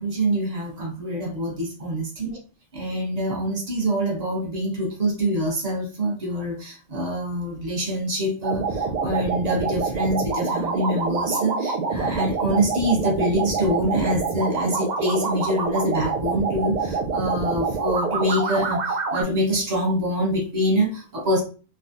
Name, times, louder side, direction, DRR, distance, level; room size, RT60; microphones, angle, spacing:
voice 1, 0.0-2.4 2.7-21.4, equal, 35° right, -1 dB, 1.0 m, -25 dB
sound 1, 8.4-19.2, right 4 dB, 70° right, 0.4 m, -26 dB
3.3 x 2.2 x 2.5 m, 0.36 s
omnidirectional pair, 1.3 m